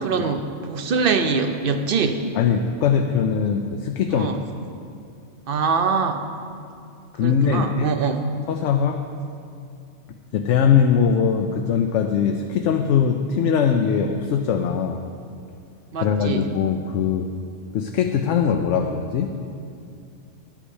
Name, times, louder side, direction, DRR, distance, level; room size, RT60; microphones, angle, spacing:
voice 1, 0.0-2.2 4.1-4.4 5.5-6.2 7.2-8.2 15.9-16.5, right 5 dB, 55° right, 7 dB, 0.8 m, -23 dB
voice 2, 2.3-4.3 7.1-7.9 8.5-9.0 10.3-15.1 16.0-17.3 17.7-19.3, left 7 dB, 80° left, 5 dB, 0.9 m, -21 dB
11.0 x 6.0 x 8.1 m, 2.4 s
omnidirectional pair, 1.3 m